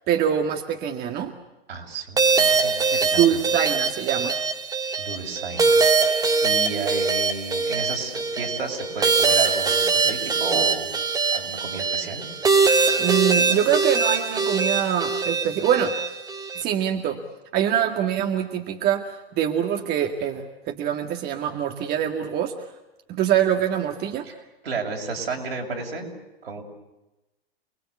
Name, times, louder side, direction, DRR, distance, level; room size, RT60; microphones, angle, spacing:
voice 1, 0.1-1.3 3.2-4.3 13.0-16.0 16.5-17.2 17.5-22.5 23.1-24.3, right 9 dB, 30° right, 4 dB, 2.0 m, -24 dB
voice 2, 1.7-3.4 5.0-5.8 6.4-11.0 11.3-12.3 24.2-24.3 24.6-26.1 26.4-26.6, right 4 dB, 75° right, 1 dB, 7.0 m, -32 dB
sound 1, 2.2-16.6, right 4 dB, 10° right, 1.7 m, -22 dB
29.0 x 21.5 x 8.4 m, 1.0 s
figure-of-eight pair, 105°, 30 cm